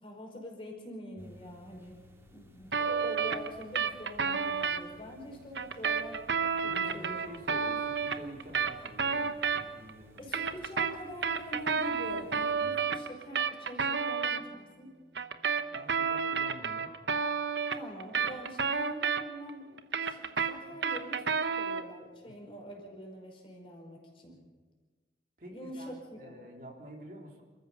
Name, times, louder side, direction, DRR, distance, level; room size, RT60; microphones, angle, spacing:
voice 1, 0.0-2.0 2.3-7.2 10.2-14.9 17.7-24.5 25.5-26.3, equal, 30° left, 0 dB, 5.1 m, -45 dB
sound 1, 1.2-12.7, left 2 dB, 15° right, 2.3 m, -58 dB
sound 2, 2.7-4.8 5.5-9.9 10.2-14.4 15.1-19.5 19.8-21.9, right 6 dB, 75° right, 1.1 m, -31 dB
voice 2, 6.6-10.3 15.7-16.9 20.7-20.8 22.2-22.3 25.4-27.4, equal, 50° right, 1 dB, 3.1 m, -48 dB
28.0 x 14.0 x 6.9 m, 1.3 s
head